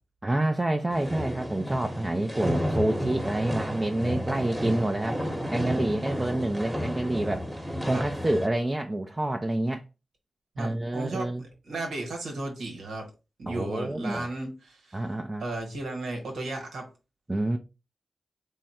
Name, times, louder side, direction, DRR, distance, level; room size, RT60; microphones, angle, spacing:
voice 1, 0.2-5.2 5.5-7.5 7.9-9.8 10.6-11.4 13.5-14.3 14.9-15.5 17.3-17.6, right 1 dB, 25° right, 0.5 m, -28 dB
sound 1, 0.9-8.5, equal, 5° right, 1.1 m, -31 dB
voice 2, 10.5-13.0 13.4-15.0 15.4-16.9, right 2 dB, 85° right, 1.2 m, -35 dB
3.6 x 2.2 x 4.2 m
cardioid pair, 45°, 0 cm